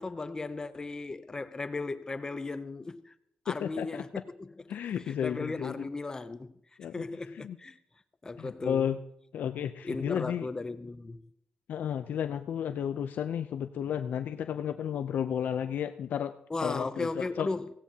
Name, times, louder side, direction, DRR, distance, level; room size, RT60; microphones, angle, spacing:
voice 1, 0.0-3.1 3.5-4.5 4.9-6.5 6.8-7.8 8.2-9.0 9.8-11.3 16.5-17.7, left 3 dB, 20° left, 0.5 m, -36 dB
voice 2, 3.5-4.0 4.7-5.9 6.8-7.0 7.4-7.6 8.4-9.0 9.3-10.5 11.7-16.3 16.6-17.5, left 9 dB, 70° left, 0.5 m, -32 dB
17.0 x 16.5 x 2.8 m
cardioid pair, 120°, 3 cm